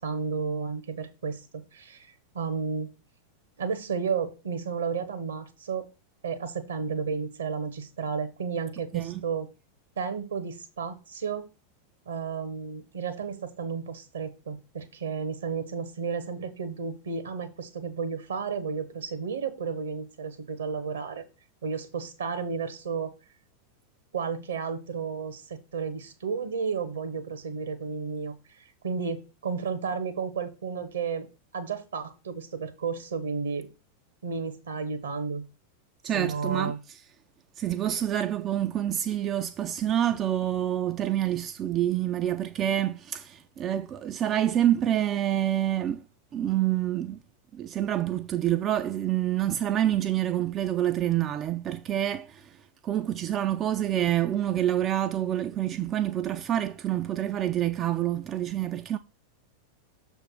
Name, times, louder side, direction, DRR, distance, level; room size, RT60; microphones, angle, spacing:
voice 1, 0.0-1.4 1.7-2.9 3.6-5.9 6.2-9.5 10.0-11.5 12.1-21.2 21.6-23.1 24.1-31.3 31.5-33.7 34.2-35.4 36.1-36.8, right 5 dB, 65° right, 1.1 m, -32 dB
voice 2, 36.0-37.0 37.6-46.0 46.3-47.2 47.5-52.6 52.8-59.0, right 11 dB, 30° right, 0.4 m, -27 dB
6.6 x 3.5 x 6.2 m
figure-of-eight pair, 90°, 0 cm